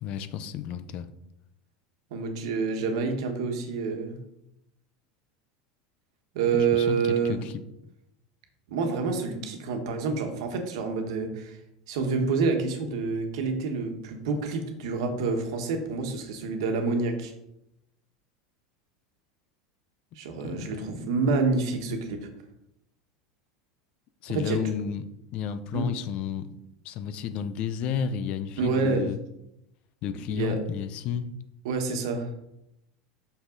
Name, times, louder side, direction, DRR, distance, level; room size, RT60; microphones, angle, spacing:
voice 1, 0.0-1.1 6.6-7.5 20.4-21.0 24.2-25.0 25.3-26.5 26.8-29.2 30.0-31.3, left 8 dB, 45° left, 11 dB, 0.5 m, -32 dB
voice 2, 2.1-4.2 6.3-7.4 8.7-11.6 11.9-17.3 20.1-22.3 24.3-24.6 25.7-25.9 28.6-29.0 30.3-30.6 31.6-32.3, right 4 dB, 75° right, 5 dB, 1.3 m, -28 dB
6.3 x 5.8 x 3.9 m, 0.83 s
supercardioid pair, 145°, 3 cm